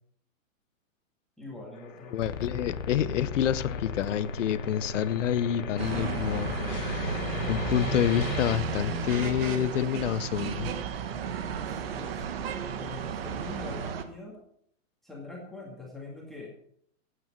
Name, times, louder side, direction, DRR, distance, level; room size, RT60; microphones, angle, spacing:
voice 1, 1.4-2.2 11.7-14.4 15.0-16.5, left 2 dB, ahead, -3 dB, 2.1 m, -43 dB
sound 1, 1.7-8.6, left 7 dB, 85° left, 2.2 m, -42 dB
voice 2, 2.1-7.2 7.5-10.7, left 10 dB, 65° left, 16 dB, 0.9 m, -28 dB
sound 2, 2.2-9.6, left 5 dB, 20° left, 0.4 m, -36 dB
sound 3, 5.8-14.0, right 7 dB, 45° right, 1.5 m, -33 dB
15.5 x 9.2 x 6.0 m, 0.68 s
supercardioid pair, 175°, 40 cm